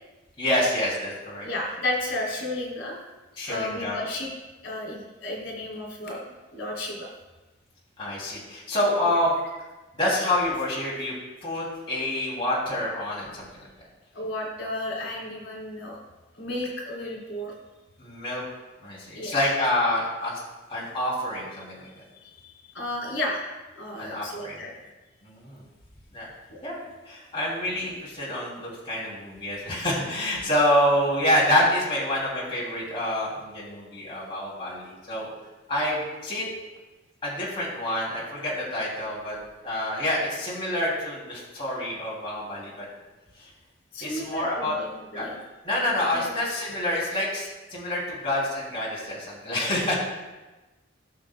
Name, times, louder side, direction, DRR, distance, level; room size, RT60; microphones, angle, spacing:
voice 1, 0.4-1.5 3.4-4.0 8.0-9.3 9.9-11.1 11.4-13.5 18.0-18.4 18.8-20.4 20.7-21.8 24.0-24.6 25.2-25.6 26.1-26.3 26.6-35.3 35.7-36.5 37.2-39.4 39.6-42.9 43.4-43.5 44.0-44.8 45.1-45.3 45.6-50.0, left 1 dB, 25° left, -7 dB, 2.9 m, -27 dB
voice 2, 1.4-3.0 3.5-4.3 4.6-6.2 6.5-7.1 14.1-16.0 16.3-17.5 19.1-19.3 22.2-23.4 23.7-24.7 26.5-26.6 32.1-32.2 43.9-45.4 46.1-46.3, left 1 dB, 75° left, -3 dB, 3.2 m, -33 dB
17.5 x 6.6 x 2.3 m, 1.1 s
head